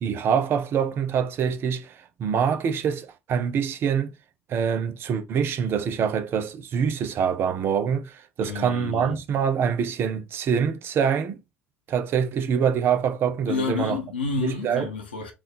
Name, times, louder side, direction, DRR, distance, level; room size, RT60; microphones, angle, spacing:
voice 1, 0.0-4.1 4.5-11.4 11.9-14.0 14.4-14.9, right 7 dB, 45° right, 0.7 m, -25 dB
voice 2, 8.4-9.2 13.5-15.3, left 5 dB, 80° left, 0.9 m, -30 dB
3.6 x 2.5 x 4.3 m
figure-of-eight pair, 60°, 5 cm